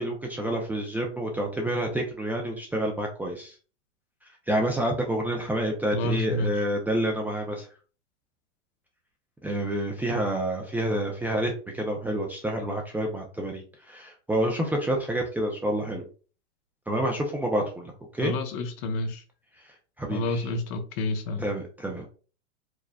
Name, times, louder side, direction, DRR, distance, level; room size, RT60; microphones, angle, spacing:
voice 1, 0.0-3.5 4.5-7.7 9.4-16.1 16.9-18.3 20.0-20.5 21.4-22.1, right 1 dB, 5° right, 0.6 m, -28 dB
voice 2, 5.9-6.6 18.2-19.2 20.1-21.4, left 2 dB, 40° left, 1.0 m, -29 dB
5.0 x 3.9 x 2.4 m
hypercardioid pair, 120°, 37 cm